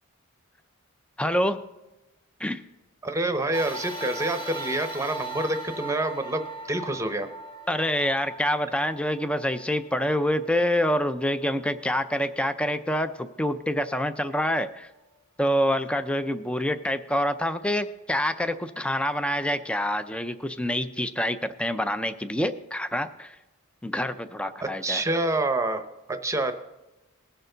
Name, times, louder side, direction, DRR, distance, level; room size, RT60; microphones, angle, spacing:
voice 1, 1.2-1.6 2.4-2.6 7.7-14.9 15.4-23.4 23.8-25.0, equal, 5° left, 10 dB, 0.4 m, -26 dB
voice 2, 3.0-7.3 24.6-26.5, right 2 dB, 15° right, 7 dB, 0.8 m, -27 dB
sound 1, 3.5-12.1 12.7-12.8 14.0-14.1, right 1 dB, 20° left, 1.7 m, -40 dB
20.0 x 6.7 x 3.9 m, 1.0 s
head